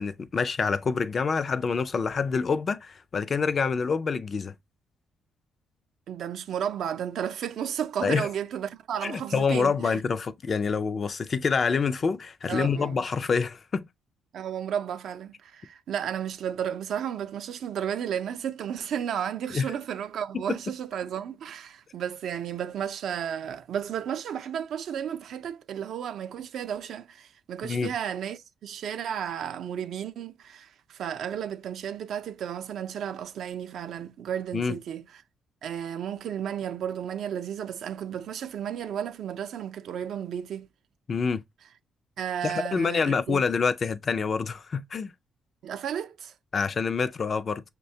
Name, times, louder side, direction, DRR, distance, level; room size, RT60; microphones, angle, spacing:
voice 1, 0.0-4.5 8.0-8.3 9.0-13.8 19.5-19.7 27.6-27.9 34.5-34.8 41.1-41.4 42.4-45.1 46.5-47.6, left 5 dB, 40° left, 0.3 m, -26 dB
voice 2, 6.1-10.0 12.5-13.0 14.3-35.2 35.6-40.7 42.2-43.4 45.6-46.3, right 9 dB, 70° right, 0.4 m, -33 dB
6.1 x 2.2 x 2.6 m
cardioid pair, 90°, 0 cm